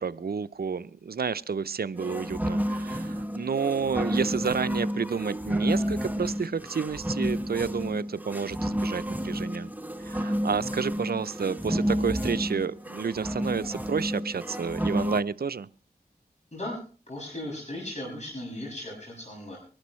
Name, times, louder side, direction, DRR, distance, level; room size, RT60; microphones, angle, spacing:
voice 1, 0.0-9.7 10.0-15.7, right 6 dB, 70° right, 0.5 m, -30 dB
sound 1, 2.0-15.2, equal, 10° right, 1.0 m, -30 dB
voice 2, 17.1-19.6, left 1 dB, 45° left, 6.7 m, -37 dB
23.0 x 11.5 x 3.1 m
wide cardioid pair, 45°, 16 cm